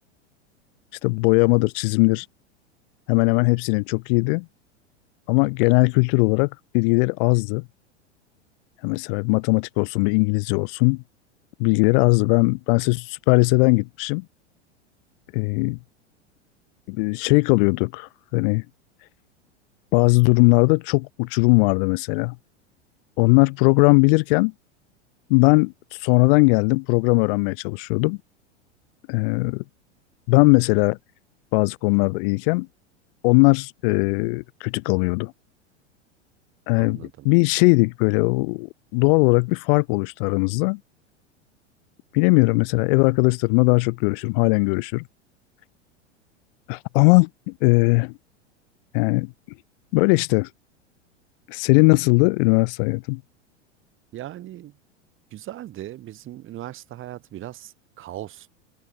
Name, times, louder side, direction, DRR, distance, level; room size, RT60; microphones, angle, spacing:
voice 1, 1.0-2.2 3.1-4.4 5.3-7.6 8.8-11.0 11.6-14.2 15.3-15.8 16.9-18.6 19.9-22.3 23.2-24.5 25.3-28.2 29.1-29.6 30.3-31.0 31.5-32.7 33.2-35.3 36.7-40.8 42.1-45.0 46.7-48.1 48.9-49.3 49.9-50.5 51.5-53.2, left 32 dB, 50° left, 3.2 m, -19 dB
voice 2, 36.7-37.3 54.1-54.7 55.3-58.5, right 14 dB, 35° right, 7.7 m, -38 dB
open air
figure-of-eight pair, 90°, 36 cm